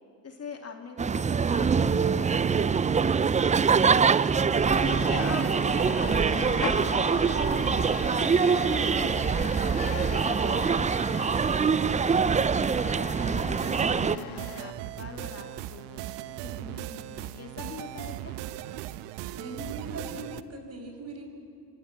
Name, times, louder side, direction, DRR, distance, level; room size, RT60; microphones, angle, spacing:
voice 1, 0.2-4.1 4.8-9.5 9.9-12.4 12.8-18.3, left 4 dB, 30° left, 3 dB, 2.6 m, -43 dB
sound 1, 1.0-14.2, right 6 dB, 15° right, 0.6 m, -24 dB
sound 2, 4.7-14.7, left 12 dB, 50° left, 1.6 m, -39 dB
sound 3, 13.2-20.4, right 14 dB, 55° right, 1.1 m, -38 dB
voice 2, 19.3-21.2, right 1 dB, 30° right, 4 dB, 7.2 m, -40 dB
27.5 x 27.0 x 7.5 m, 2.4 s
hypercardioid pair, 65°, 49 cm